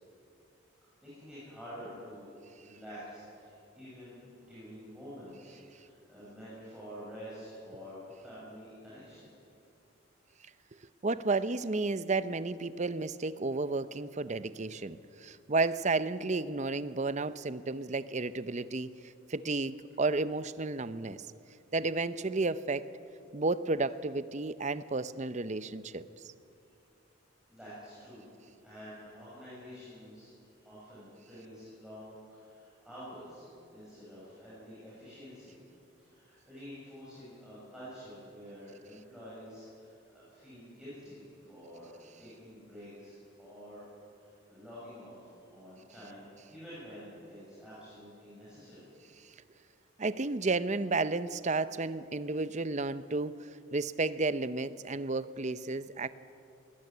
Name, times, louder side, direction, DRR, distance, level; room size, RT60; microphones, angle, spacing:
voice 1, 1.0-2.3 2.6-9.3 27.5-28.3 28.6-30.3 30.6-35.6 36.0-43.8 44.1-48.9, equal, 5° right, -11 dB, 7.1 m, -48 dB
voice 2, 11.0-18.9 19.3-21.2 21.7-22.8 23.3-26.1 50.0-56.1, right 3 dB, 35° right, 14 dB, 0.6 m, -32 dB
21.5 x 18.0 x 9.5 m, 2.6 s
head